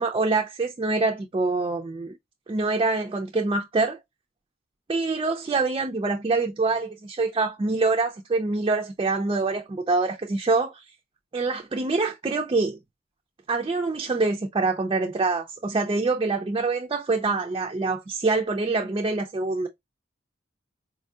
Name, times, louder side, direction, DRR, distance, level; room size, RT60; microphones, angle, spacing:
voice 1, 0.0-2.2 2.5-4.0 4.9-10.8 11.3-12.8 13.5-19.7, right 3 dB, 25° right, 0.4 m, -25 dB
4.1 x 2.6 x 2.2 m
head